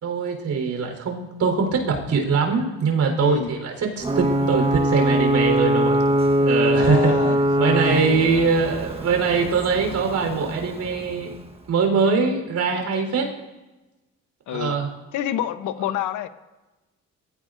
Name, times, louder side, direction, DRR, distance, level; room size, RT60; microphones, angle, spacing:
voice 1, 0.0-6.0 6.4-7.1 7.6-11.3 11.7-13.3 14.5-14.9, right 5 dB, 70° right, 2 dB, 4.1 m, -22 dB
voice 2, 3.2-3.5 6.7-8.6 14.5-14.8 15.1-16.3, left 11 dB, 80° left, 11 dB, 0.9 m, -28 dB
Ocean / Boat Water vehicle / Alarm, 4.0-11.6, right 1 dB, 20° right, 1.2 m, -22 dB
22.0 x 15.5 x 2.6 m, 1.1 s
cardioid pair, 90°, 30 cm